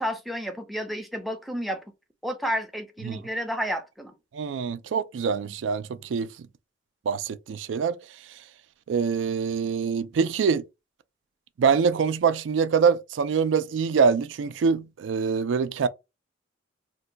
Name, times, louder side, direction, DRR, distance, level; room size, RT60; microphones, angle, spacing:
voice 1, 0.0-1.8 2.2-4.1, equal, ahead, 0.4 m, -31 dB
voice 2, 4.3-6.3 7.1-8.0 8.9-10.6 11.6-15.9, right 6 dB, 85° right, 0.3 m, -24 dB
2.6 x 2.2 x 3.7 m
head